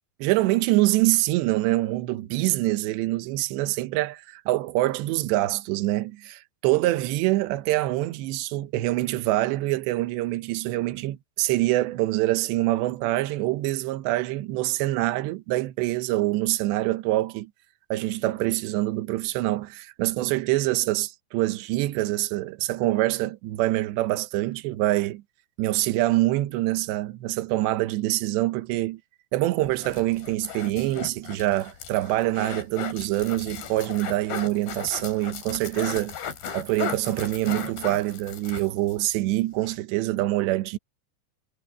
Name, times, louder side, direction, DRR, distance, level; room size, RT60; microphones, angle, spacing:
voice 1, 0.2-17.5 17.9-25.2 25.6-29.0 29.3-36.2 36.5-40.8, right 17 dB, 75° right, 3.2 m, -25 dB
sound 1, 29.6-39.0 39.3-39.4 39.6-39.8, left 7 dB, 60° left, 4.7 m, -36 dB
omnidirectional pair, 5.2 m